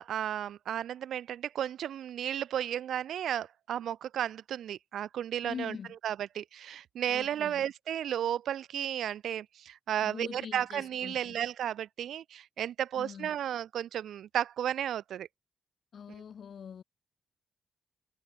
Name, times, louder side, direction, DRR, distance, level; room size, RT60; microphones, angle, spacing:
voice 1, 0.0-5.8 6.0-15.3, right 10 dB, 80° right, 2.9 m, -33 dB
voice 2, 5.4-5.9 7.1-7.7 10.0-11.3 13.0-13.3 15.9-16.8, left 7 dB, 50° left, 7.5 m, -43 dB
wide cardioid pair, 170°, 0 cm